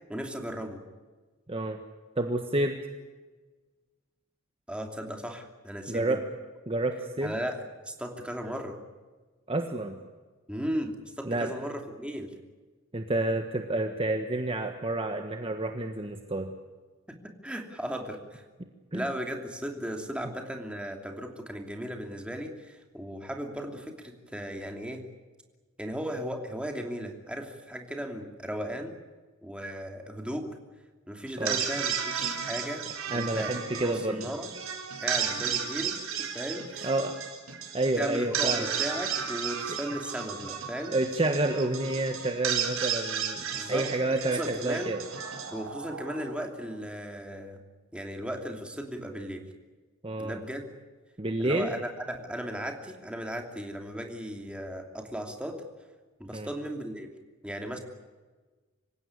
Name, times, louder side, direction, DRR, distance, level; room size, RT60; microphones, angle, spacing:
voice 1, 0.1-0.8 4.7-6.2 7.2-8.8 10.5-12.4 17.1-18.4 18.9-25.0 25.8-28.9 29.4-30.5 31.1-34.5 35.0-36.9 38.0-41.0 43.6-43.9 44.3-45.0 45.5-47.6 47.9-49.5 50.2-50.7 51.4-55.6 56.2-57.1 57.4-57.8, equal, 5° right, 3 dB, 2.8 m, -36 dB
voice 2, 2.2-2.8 5.9-6.2 6.7-7.3 9.5-10.0 11.3-11.5 12.9-16.5 18.9-19.0 31.4-31.6 33.1-34.2 36.8-37.1 37.7-38.7 39.7-39.8 40.9-44.4 44.6-45.0 50.0-50.4 51.2-51.7 56.3-56.5, right 2 dB, 25° right, 5 dB, 1.4 m, -29 dB
sound 1, 31.3-46.5, right 7 dB, 75° right, 4.1 m, -34 dB
26.0 x 16.5 x 9.7 m, 1.3 s
head